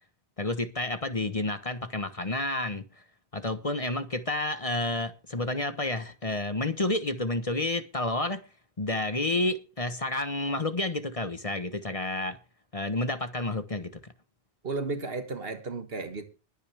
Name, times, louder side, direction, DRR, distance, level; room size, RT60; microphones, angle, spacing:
voice 1, 0.4-2.9 3.3-8.4 8.8-12.4 12.7-13.9, left 2 dB, 35° left, 1.1 m, -30 dB
voice 2, 14.6-16.2, right 3 dB, 65° right, 1.9 m, -33 dB
21.0 x 9.5 x 3.4 m
omnidirectional pair, 1.1 m